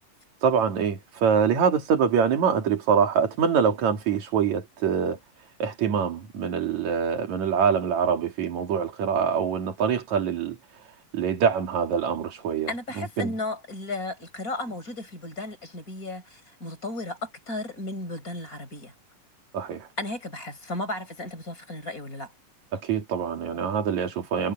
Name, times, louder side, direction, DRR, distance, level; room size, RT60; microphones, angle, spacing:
voice 1, 0.4-5.2 5.6-10.6 11.1-12.7 13.0-13.3 19.5-19.9 22.7-24.5, right 7 dB, 60° right, 3.5 m, -24 dB
voice 2, 12.7-18.9 20.0-22.3, left 2 dB, 25° left, 6.1 m, -34 dB
omnidirectional pair, 3.8 m